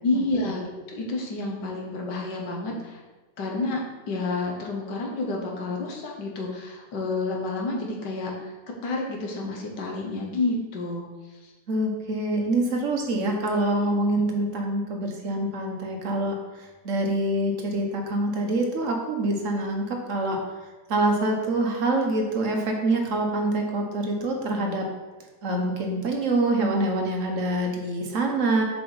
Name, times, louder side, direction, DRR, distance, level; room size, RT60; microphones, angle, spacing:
voice 1, 0.0-3.0 3.4-3.8 4.1-8.5 8.8-11.0 11.4-11.5, left 2 dB, 75° left, 0 dB, 1.7 m, -29 dB
voice 2, 11.7-20.4 20.9-24.8 25.4-28.6, right 2 dB, 50° right, 2 dB, 1.2 m, -25 dB
7.2 x 4.8 x 4.0 m, 1.2 s
omnidirectional pair, 1.9 m